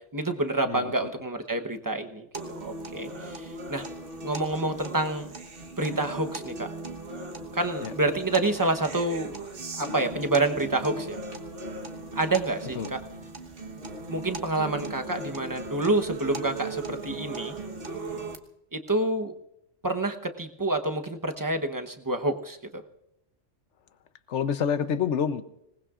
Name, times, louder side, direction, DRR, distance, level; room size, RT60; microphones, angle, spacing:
voice 1, 0.1-3.8 4.2-5.3 5.8-6.7 7.5-9.3 9.8-11.2 12.1-13.0 14.1-17.5 18.7-19.3 19.8-22.8, right 2 dB, 20° right, 5 dB, 0.9 m, -28 dB
sound 1, 2.3-18.4, right 2 dB, 50° right, 1.5 m, -38 dB
voice 2, 24.3-25.4, left 7 dB, 70° left, 12 dB, 1.1 m, -27 dB
26.0 x 19.0 x 2.5 m, 0.83 s
omnidirectional pair, 1.3 m